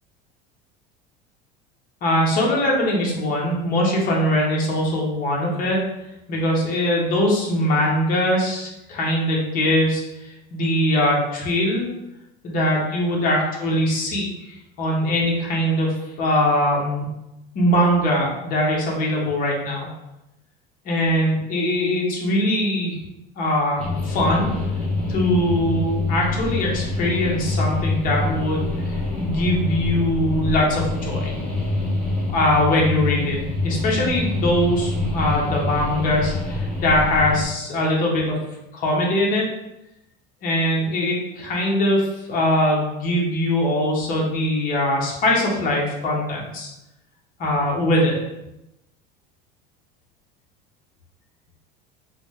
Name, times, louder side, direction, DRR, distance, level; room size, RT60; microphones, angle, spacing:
voice 1, 2.0-5.8 6.3-11.9 12.4-17.1 17.5-19.9 20.8-23.0 23.3-24.5 25.1-31.3 32.3-33.4 33.6-38.4 38.7-39.4 40.4-46.7 47.4-48.1, left 1 dB, 40° left, -2 dB, 1.0 m, -22 dB
sound 1, 23.8-37.5, left 2 dB, 5° left, 0.8 m, -26 dB
4.0 x 2.1 x 3.2 m, 0.91 s
cardioid pair, 140°, 21 cm